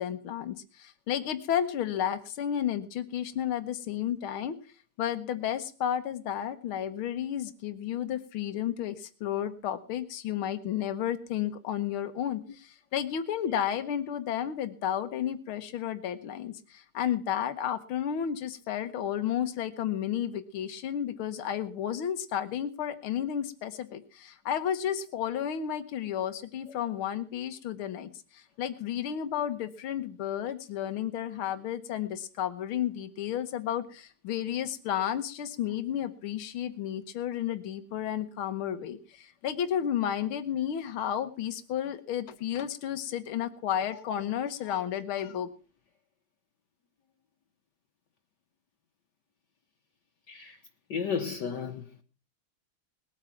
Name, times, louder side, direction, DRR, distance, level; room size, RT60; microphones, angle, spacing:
voice 1, 0.0-4.6 5.0-45.5, left 10 dB, 90° left, 1.9 m, -32 dB
voice 2, 50.3-50.6 50.9-52.0, left 6 dB, 60° left, 1.6 m, -33 dB
20.0 x 8.8 x 5.9 m
omnidirectional pair, 2.2 m